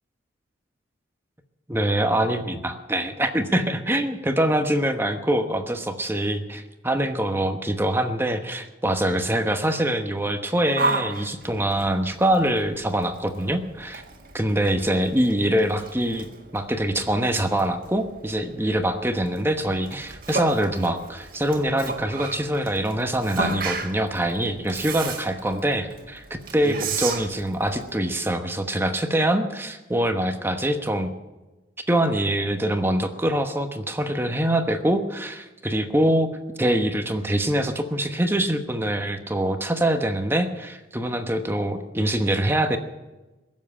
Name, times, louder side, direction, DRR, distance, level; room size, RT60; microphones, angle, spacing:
voice 1, 1.7-14.0 14.3-16.3 16.5-31.1 31.9-36.3 36.6-42.8, right 1 dB, 10° right, 7 dB, 1.0 m, -24 dB
Yell, 10.8-27.9, right 3 dB, 50° right, 1.8 m, -34 dB
22.0 x 7.4 x 8.7 m, 1.1 s
head